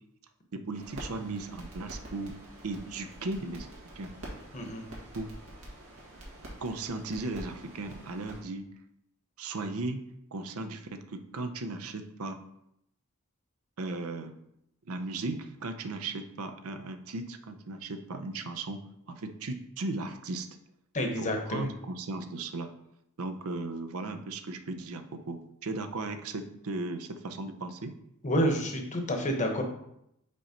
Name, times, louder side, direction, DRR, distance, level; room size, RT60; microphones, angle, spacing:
voice 1, 0.5-2.4 2.6-4.1 5.1-5.3 6.6-8.7 9.4-12.4 13.8-14.4 14.8-18.8 19.1-20.5 21.2-22.7 23.2-27.9, right 2 dB, 70° right, 7 dB, 0.6 m, -36 dB
sound 1, 0.7-8.4, right 1 dB, 85° right, 1.9 m, -46 dB
voice 2, 20.9-21.7 28.2-29.6, equal, 35° left, 3 dB, 1.0 m, -29 dB
5.3 x 4.2 x 5.1 m, 0.78 s
head